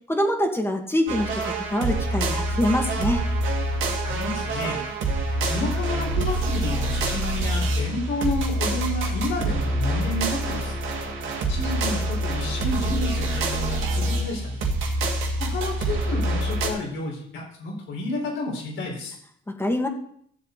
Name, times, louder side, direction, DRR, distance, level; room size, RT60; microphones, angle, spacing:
voice 1, 0.1-3.2 19.6-19.9, left 1 dB, 10° left, 2 dB, 2.2 m, -24 dB
sound 1, 1.1-16.7, right 1 dB, 80° right, 2.5 m, -26 dB
voice 2, 4.0-4.8 5.4-10.8 11.5-14.6 15.4-19.2, left 2 dB, 85° left, -1 dB, 5.0 m, -31 dB
15.0 x 7.7 x 4.1 m, 0.65 s
cardioid pair, 90°, 20 cm